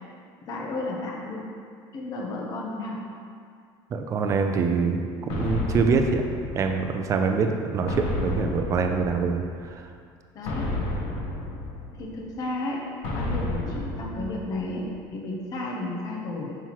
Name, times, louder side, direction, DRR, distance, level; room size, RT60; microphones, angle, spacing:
voice 1, 0.5-1.5 1.9-3.1 10.3-10.8 12.0-16.6, left 2 dB, 35° left, -2 dB, 0.8 m, -33 dB
voice 2, 3.9-6.2 6.5-9.9, right 5 dB, 30° right, 4 dB, 0.5 m, -25 dB
sound 1, 5.3-7.1 7.9-9.6 10.4-12.2 13.0-14.8, left 2 dB, 60° left, 1.0 m, -31 dB
5.8 x 5.5 x 3.0 m, 2.2 s
cardioid pair, 145°, 10 cm